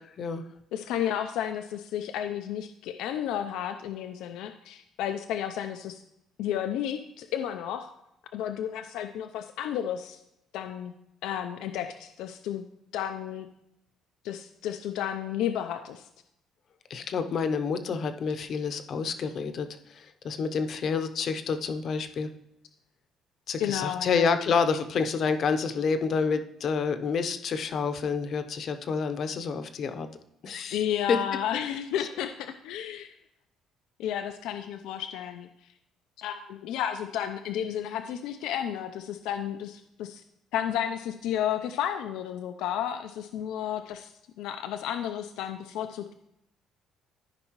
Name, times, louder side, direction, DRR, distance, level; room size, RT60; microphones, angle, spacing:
voice 1, 0.7-6.0 6.4-7.9 8.3-10.2 10.5-10.9 11.2-12.6 12.9-13.5 14.2-16.0 23.6-24.3 30.7-33.1 34.0-35.5 36.2-40.2 40.5-44.1 44.4-46.1, left 10 dB, 85° left, 7 dB, 0.5 m, -32 dB
voice 2, 16.9-19.7 19.9-22.3 23.5-30.1 30.4-30.8 31.1-31.2 32.0-32.1, left 5 dB, 45° left, 9 dB, 0.7 m, -28 dB
13.5 x 5.3 x 3.0 m, 0.81 s
cardioid pair, 145°, 0 cm